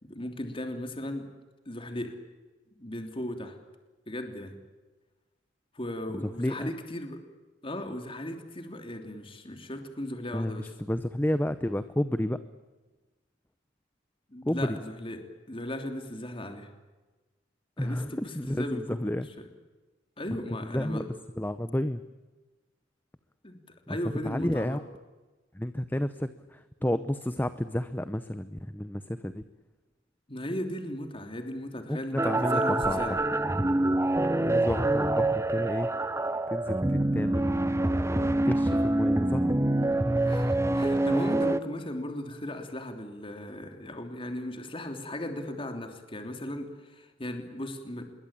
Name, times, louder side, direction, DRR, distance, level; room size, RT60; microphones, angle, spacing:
voice 1, 0.0-1.3 1.6-2.1 2.8-3.6 4.1-4.6 5.7-7.2 7.6-10.7 14.3-15.2 15.5-16.7 17.8-19.2 20.2-21.1 23.4-23.6 23.9-24.8 30.3-33.2 40.2-48.0, left 1 dB, 30° left, 5 dB, 3.1 m, -37 dB
voice 2, 6.1-6.7 10.3-12.4 14.5-14.8 17.8-19.3 20.3-20.4 20.7-21.0 21.4-22.0 23.9-24.0 24.2-24.8 25.5-29.4 31.9-33.2 34.3-35.9 36.5-37.8 38.4-39.5, left 1 dB, 10° left, 12 dB, 0.8 m, -31 dB
sound 1, 32.2-41.6, right 1 dB, 15° right, 0.9 m, -26 dB
26.5 x 22.5 x 8.7 m, 1.2 s
head